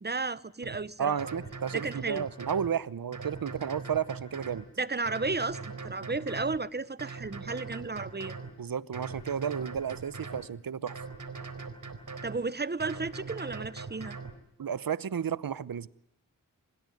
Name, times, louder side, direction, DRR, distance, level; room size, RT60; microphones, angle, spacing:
voice 1, 0.0-1.2 1.7-2.3 4.8-8.3 12.2-14.2, right 3 dB, 30° right, 0.9 m, -33 dB
sound 1, 0.6-0.8 1.2-2.7 3.1-4.6 5.1-6.6 7.0-8.5 8.9-10.4 10.9-12.4 12.8-14.3, right 4 dB, 60° right, 4.3 m, -41 dB
voice 2, 1.0-4.7 6.0-6.1 8.6-11.0 14.6-15.9, right 8 dB, 80° right, 0.9 m, -32 dB
27.0 x 16.0 x 9.2 m
wide cardioid pair, 55°, 35 cm